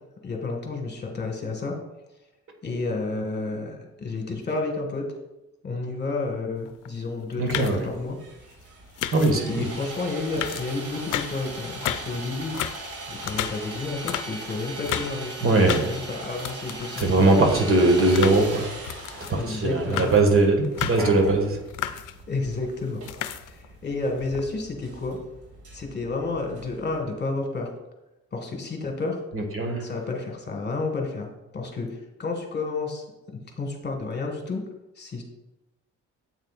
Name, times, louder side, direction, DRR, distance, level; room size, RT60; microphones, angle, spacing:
voice 1, 0.2-1.8 2.6-5.1 5.6-8.2 9.5-17.3 19.3-20.1 22.3-23.0 23.5-25.2 25.7-27.7 28.3-29.2 29.8-34.6 35.0-35.2, left 3 dB, 35° left, 2 dB, 1.7 m, -31 dB
sound 1, 6.7-6.9 7.2-7.9 9.0-9.5 10.0-10.1 10.3-11.4 11.7-12.2 12.4-15.2 15.5-16.0 16.2-17.2 17.6-19.4 19.7-20.3 20.6-21.1 21.5-22.2 22.8-23.7 24.1-24.4, left 11 dB, 85° left, 0.6 m, -33 dB
voice 2, 7.4-7.8 9.1-9.6 15.4-15.9 17.0-18.7 19.3-21.6 29.3-29.8, right 2 dB, 45° right, 3 dB, 1.8 m, -20 dB
Sawing, 7.6-27.0, right 2 dB, 75° right, 2.6 m, -40 dB
9.1 x 8.0 x 2.5 m, 0.97 s
cardioid pair, 90°, 30 cm